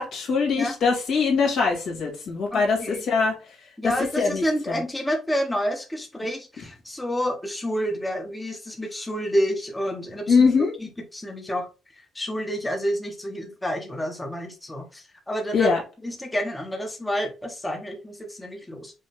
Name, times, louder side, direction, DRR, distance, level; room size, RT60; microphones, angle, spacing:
voice 1, 0.0-3.3 3.8-4.8 10.3-10.7 15.5-15.8, left 5 dB, 70° left, 0 dB, 1.9 m, -22 dB
voice 2, 2.5-3.0 3.8-10.4 10.8-11.7 12.1-15.7 16.0-18.9, equal, 10° left, 2 dB, 1.0 m, -29 dB
5.4 x 2.2 x 3.4 m, 0.31 s
cardioid pair, 90°, 0 cm